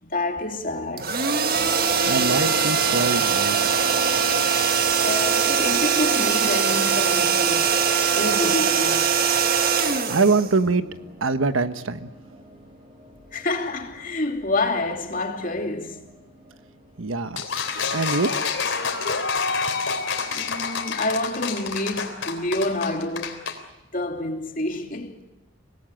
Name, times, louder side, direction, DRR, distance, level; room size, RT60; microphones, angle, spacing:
voice 1, 0.0-1.8 5.0-7.9 8.1-9.2 13.3-16.0 20.3-23.5 23.9-25.2, left 2 dB, 40° left, 2.7 m, -28 dB
sound 1, 1.0-10.9, right 6 dB, 45° right, 1.7 m, -21 dB
sound 2, 1.5-21.2, right 1 dB, 30° right, 6.1 m, -43 dB
voice 2, 2.1-3.6 10.1-10.8 11.2-12.1 17.0-17.4 17.9-18.3, right 3 dB, 85° right, 1.3 m, -23 dB
sound 3, 17.4-23.6, left 5 dB, 70° left, 3.5 m, -27 dB
25.5 x 19.0 x 8.9 m
head